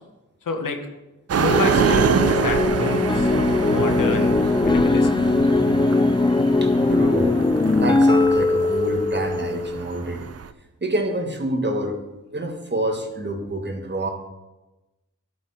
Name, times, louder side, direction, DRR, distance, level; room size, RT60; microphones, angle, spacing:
voice 1, 0.4-0.8 1.4-3.3 3.6-5.2 5.4-5.6, left 4 dB, 75° left, 5 dB, 1.1 m, -29 dB
sound 1, 1.3-10.5, right 7 dB, 50° right, 0.5 m, -26 dB
sound 2, 1.5-9.9, left 3 dB, 15° left, 0.3 m, -20 dB
voice 2, 6.6-7.4 7.8-10.3 10.8-12.0 12.3-14.1, right 1 dB, 35° right, 3 dB, 1.6 m, -27 dB
11.0 x 5.5 x 4.3 m, 1.0 s
cardioid pair, 50°, 32 cm